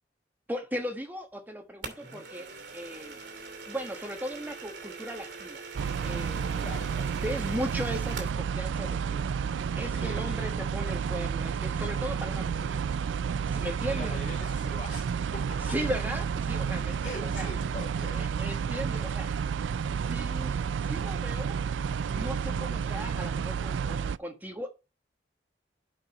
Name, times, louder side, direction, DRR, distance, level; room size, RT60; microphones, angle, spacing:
voice 1, 0.5-3.2 3.7-5.6 6.0-6.7 7.2-9.3 9.7-12.6 13.4-14.2 15.7-17.5 18.1-19.3 20.0-21.6 22.1-24.7, equal, 10° right, 4 dB, 1.3 m, -37 dB
sound 1, 1.8-8.4, right 4 dB, 70° right, 2.7 m, -43 dB
sound 2, 5.7-24.2, right 6 dB, 90° right, 0.3 m, -31 dB
voice 2, 6.6-7.2 9.9-10.5 12.5-12.8 13.5-15.8 17.0-18.2 22.5-22.8, left 2 dB, 40° left, -2 dB, 2.8 m, -44 dB
8.3 x 5.3 x 4.9 m, 0.29 s
head